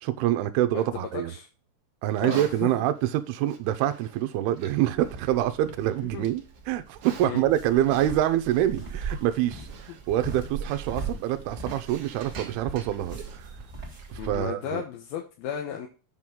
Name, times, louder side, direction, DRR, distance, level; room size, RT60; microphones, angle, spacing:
voice 1, 0.0-1.3 2.0-6.4 6.7-9.7 10.1-13.5 14.2-14.8, right 13 dB, 80° right, 2.7 m, -26 dB
voice 2, 0.7-1.5 2.2-2.7 6.1-6.3 7.2-7.4 9.9-10.0 14.2-15.9, left 8 dB, 75° left, 2.8 m, -34 dB
Livestock farm animals working animals, 2.1-14.3, right 7 dB, 65° right, 2.2 m, -47 dB
sound 1, 4.9-14.4, right 4 dB, 25° right, 1.7 m, -39 dB
8.2 x 6.2 x 3.7 m
omnidirectional pair, 4.5 m